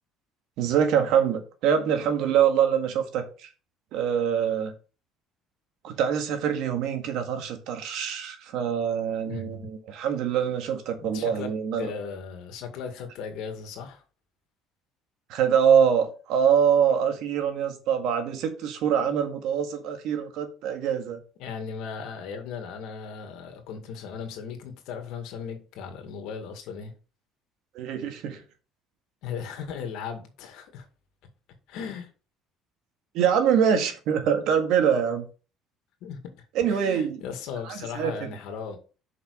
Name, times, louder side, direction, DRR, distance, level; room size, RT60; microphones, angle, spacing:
voice 1, 0.6-3.5 3.9-4.7 5.8-11.9 15.3-21.2 27.7-28.4 33.1-35.3 36.6-37.2 37.7-38.3, right 8 dB, 75° right, 1.7 m, -24 dB
voice 2, 9.3-9.6 11.0-11.5 11.8-14.0 21.4-26.9 29.2-30.9 31.7-32.1 36.0-38.8, left 6 dB, 75° left, 2.0 m, -37 dB
6.7 x 5.5 x 5.3 m
cardioid pair, 100°, 0 cm